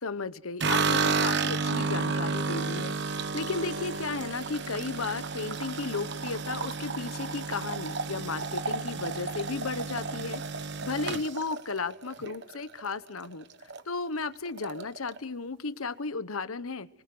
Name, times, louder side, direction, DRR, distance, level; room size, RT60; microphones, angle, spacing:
voice 1, 0.0-13.5 13.9-16.9, left 4 dB, 85° left, 14 dB, 1.1 m, -34 dB
sound 1, 0.6-12.9 13.2-13.8 14.1-14.2 14.5-15.2, right 4 dB, 55° right, 1.2 m, -32 dB
25.5 x 23.0 x 7.7 m, 0.89 s
head